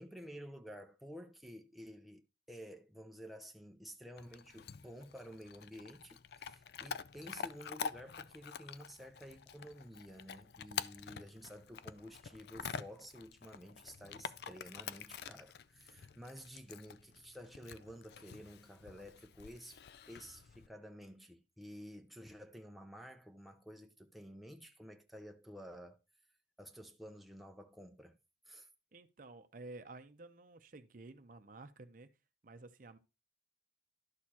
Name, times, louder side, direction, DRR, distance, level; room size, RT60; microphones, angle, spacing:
voice 1, 0.0-19.8 20.1-26.0 26.6-28.2 28.5-28.7, equal, ahead, 0.6 m, -52 dB
Chewing mastication / Dog, 4.2-20.7, left 7 dB, 60° left, 0.4 m, -47 dB
voice 2, 28.9-32.1 32.4-33.0, right 2 dB, 50° right, 0.6 m, -52 dB
11.5 x 6.5 x 2.9 m
head